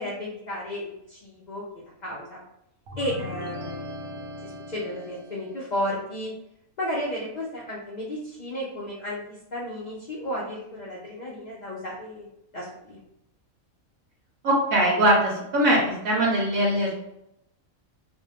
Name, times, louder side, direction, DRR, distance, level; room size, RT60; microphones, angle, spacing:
voice 1, 0.0-1.6 2.0-2.4 3.0-3.9 4.4-6.3 6.8-9.2 9.5-12.3 12.5-13.0, equal, 80° left, -5 dB, 0.4 m, -33 dB
sound 1, 2.9-5.7, left 1 dB, 55° right, 0.6 m, -38 dB
voice 2, 14.4-16.9, right 1 dB, 75° right, -2 dB, 1.0 m, -21 dB
2.6 x 2.1 x 2.8 m, 0.81 s
omnidirectional pair, 1.5 m